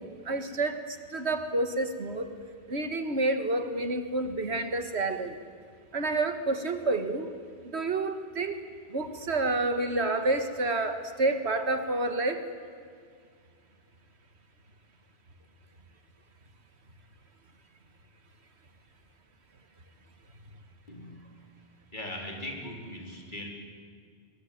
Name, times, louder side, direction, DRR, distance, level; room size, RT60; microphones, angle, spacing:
voice 1, 0.0-2.3 2.7-5.4 5.9-7.3 7.7-8.6 8.9-12.5, right 2 dB, 85° right, 8 dB, 2.0 m, -29 dB
voice 2, 20.9-21.3 21.9-23.5, left 1 dB, 50° left, 0 dB, 4.3 m, -39 dB
22.5 x 22.5 x 9.4 m, 2.1 s
omnidirectional pair, 1.1 m